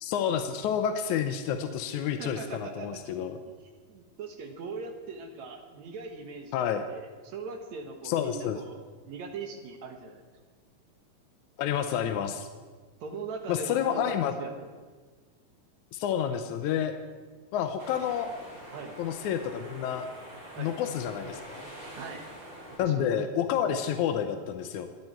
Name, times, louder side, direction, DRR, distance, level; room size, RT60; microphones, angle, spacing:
voice 1, 0.0-3.4 6.5-6.8 8.0-8.6 11.6-12.5 13.5-14.3 15.9-17.0 17.5-18.3 19.0-20.1 20.6-21.7 22.8-24.9, left 9 dB, 80° left, 7 dB, 1.8 m, -29 dB
voice 2, 2.2-3.2 3.9-8.8 9.1-10.2 13.0-14.5 18.7-19.0 20.5-20.7 21.9-22.2 22.7-23.1, right 4 dB, 65° right, 5 dB, 2.1 m, -41 dB
sound 1, 17.8-22.8, right 1 dB, 30° right, 6.3 m, -45 dB
25.0 x 9.5 x 4.5 m, 1.5 s
omnidirectional pair, 4.1 m